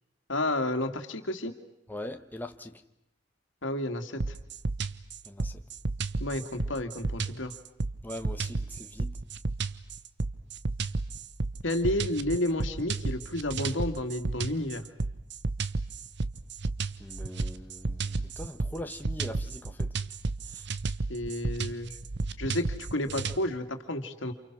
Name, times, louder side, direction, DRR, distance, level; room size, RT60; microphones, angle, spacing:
voice 1, 0.3-1.5 3.6-4.4 6.2-7.5 11.6-14.8 21.1-21.9 22.4-24.3, left 1 dB, 80° left, 2.5 m, -31 dB
voice 2, 1.9-2.8 5.2-5.6 8.0-9.2 17.0-19.9 20.5-20.7, left 1 dB, 10° left, 1.3 m, -41 dB
sound 1, 4.2-23.4, right 3 dB, 65° right, 1.1 m, -32 dB
29.0 x 29.0 x 6.2 m
head